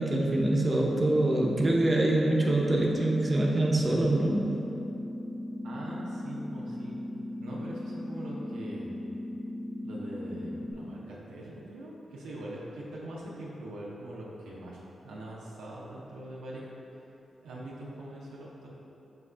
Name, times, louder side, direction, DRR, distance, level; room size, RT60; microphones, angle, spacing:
voice 1, 0.0-4.5, right 1 dB, 40° right, -2 dB, 0.6 m, -25 dB
sound 1, 0.7-10.7, left 1 dB, 50° left, 1.2 m, -38 dB
voice 2, 5.6-6.9 7.4-8.9 9.8-16.7 17.4-18.7, right 1 dB, 85° right, -6 dB, 0.5 m, -42 dB
5.2 x 2.4 x 3.3 m, 2.9 s
supercardioid pair, 40°, 0 cm